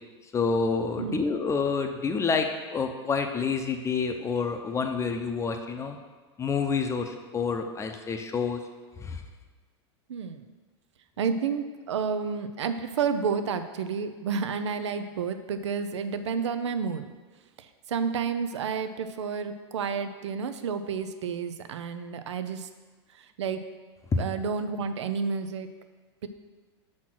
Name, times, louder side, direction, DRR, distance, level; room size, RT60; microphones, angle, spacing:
voice 1, 0.3-6.0 6.4-8.6 9.0-9.2 24.1-24.2, left 5 dB, 20° left, 5 dB, 0.7 m, -28 dB
voice 2, 10.1-10.5 11.2-17.1 17.6-22.7 23.1-23.6 24.2-25.7 26.2-26.3, right 6 dB, 85° right, 10 dB, 0.6 m, -30 dB
6.0 x 4.3 x 6.0 m, 1.4 s
hypercardioid pair, 115°, 14 cm